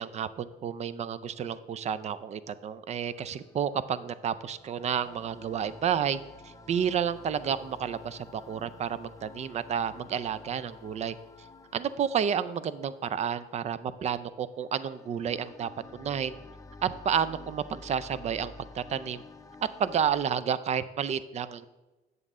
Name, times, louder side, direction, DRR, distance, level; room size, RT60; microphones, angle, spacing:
voice 1, 0.0-11.2 11.7-16.3 16.8-19.2 19.8-21.7, right 8 dB, 40° right, 15 dB, 0.5 m, -31 dB
sound 1, 3.0-20.3, left 3 dB, 20° left, 0.7 m, -51 dB
8.0 x 7.3 x 3.7 m, 1.1 s
cardioid pair, 110°, 17 cm